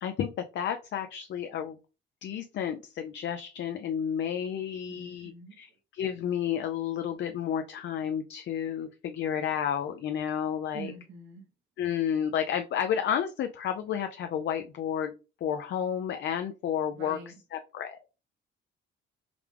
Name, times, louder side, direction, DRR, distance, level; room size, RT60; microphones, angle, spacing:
voice 1, 0.0-1.8 2.2-5.3 5.6-5.7 5.9-10.9 11.8-15.1 15.4-18.0, left 9 dB, 65° left, 7 dB, 0.5 m, -31 dB
voice 2, 4.9-5.5 10.7-11.4 16.9-17.3, right 5 dB, 80° right, 2 dB, 1.4 m, -45 dB
5.0 x 2.3 x 3.4 m, 0.31 s
cardioid pair, 90°, 20 cm